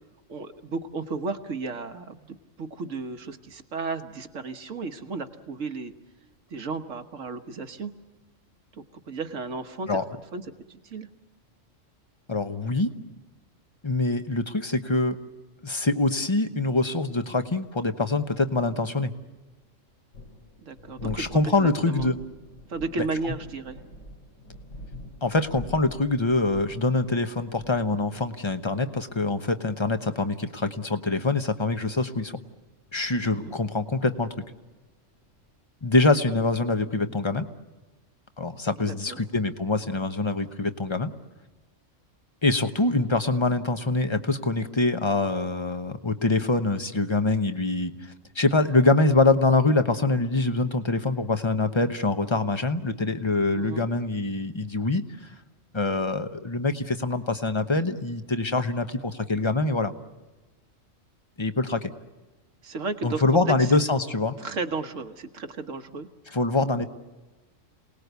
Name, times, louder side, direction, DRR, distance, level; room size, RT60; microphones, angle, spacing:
voice 1, 0.3-2.2 2.6-5.9 6.5-7.9 8.7-10.0 10.3-10.4 10.7-11.1 20.6-22.1 22.7-23.8 33.2-33.5 38.8-39.2 53.5-53.9 62.6-63.7 64.4-66.1, right 3 dB, 80° right, 7 dB, 1.7 m, -34 dB
voice 2, 12.3-12.9 13.8-15.2 15.6-19.1 21.0-22.2 23.0-23.1 25.2-32.4 32.9-34.3 35.8-37.4 38.4-41.1 42.4-47.9 48.3-55.0 55.7-59.9 61.4-61.9 63.0-64.4 66.3-66.8, left 3 dB, 25° left, 8 dB, 1.0 m, -24 dB
sound 1, 19.9-35.5, left 1 dB, 75° left, 4.2 m, -46 dB
28.0 x 19.5 x 8.2 m, 1.2 s
omnidirectional pair, 1.3 m